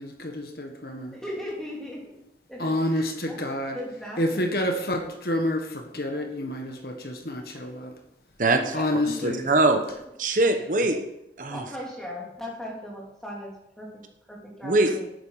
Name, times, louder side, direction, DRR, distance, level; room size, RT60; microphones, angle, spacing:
voice 1, 0.0-1.2 2.6-3.8 4.2-8.0 8.7-9.5, left 1 dB, 55° left, 4 dB, 1.5 m, -28 dB
voice 2, 1.1-2.1 2.5-3.4 3.7-4.5 7.5-7.7 8.5-9.3 9.9-10.0 10.6-10.7 11.5-13.5 13.8-14.0 14.3-15.1, equal, 5° left, -4 dB, 3.0 m, -38 dB
voice 3, 9.2-9.8 10.2-11.0 11.4-11.6 14.6-14.9, right 2 dB, 45° right, 6 dB, 1.0 m, -21 dB
11.0 x 9.1 x 4.9 m, 0.83 s
head